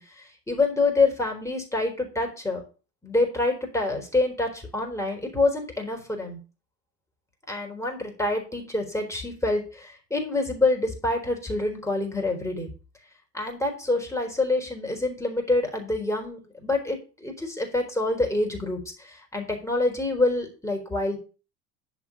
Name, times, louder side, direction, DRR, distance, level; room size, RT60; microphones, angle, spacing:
voice 1, 0.0-2.6 3.0-6.4 7.5-12.7 13.3-21.2, left 2 dB, 5° left, 1 dB, 4.0 m, -26 dB
10.5 x 4.7 x 6.8 m, 0.35 s
figure-of-eight pair, 60°, 46 cm